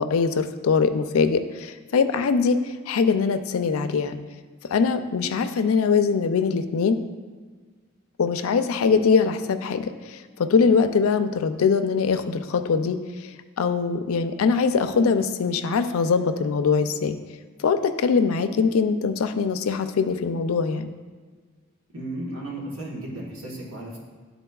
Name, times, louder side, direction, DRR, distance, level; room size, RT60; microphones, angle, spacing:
voice 1, 0.0-4.2 4.7-7.0 8.2-13.3 13.6-17.2 17.6-20.9, left 5 dB, 85° left, 9 dB, 0.4 m, -22 dB
voice 2, 21.9-24.0, right 1 dB, 85° right, -3 dB, 1.2 m, -34 dB
11.0 x 4.0 x 2.3 m, 1.5 s
head